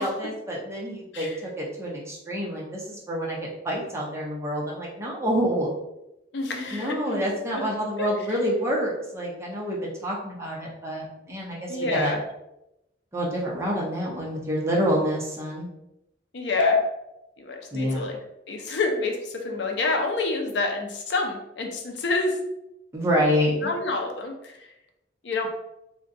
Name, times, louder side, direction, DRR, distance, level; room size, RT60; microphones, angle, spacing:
voice 1, 0.0-5.7 6.7-12.1 13.1-15.7 17.7-18.1 22.9-23.7, equal, 15° right, -3 dB, 0.6 m, -27 dB
voice 2, 6.3-7.7 8.0-8.4 11.7-12.2 16.3-16.8 17.4-18.2 18.5-22.4 23.6-24.7 25.2-25.5, left 3 dB, 70° left, 3 dB, 0.5 m, -28 dB
3.6 x 2.2 x 2.5 m, 0.89 s
head